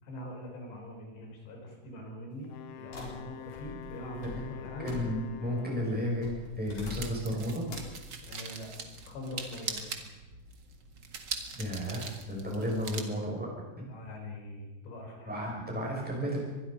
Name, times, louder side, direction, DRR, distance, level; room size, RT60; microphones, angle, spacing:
voice 1, 0.0-5.0 8.2-9.9 13.0-13.1 13.9-15.4, left 1 dB, 85° left, 1 dB, 6.7 m, -43 dB
Wind instrument woodwind instrument, 2.4-6.2, left 12 dB, 70° left, 2.7 m, -46 dB
sound 1, 2.9-5.5 6.2-7.3 7.7-8.0, left 2 dB, 45° left, 6.0 m, -44 dB
voice 2, 4.8-7.7 11.6-13.5 13.8-13.9 15.3-16.4, equal, ahead, -2 dB, 6.2 m, -33 dB
sound 2, 5.7-13.0, right 4 dB, 50° right, 1.3 m, -42 dB
24.5 x 21.0 x 5.4 m, 1.1 s
omnidirectional pair, 4.9 m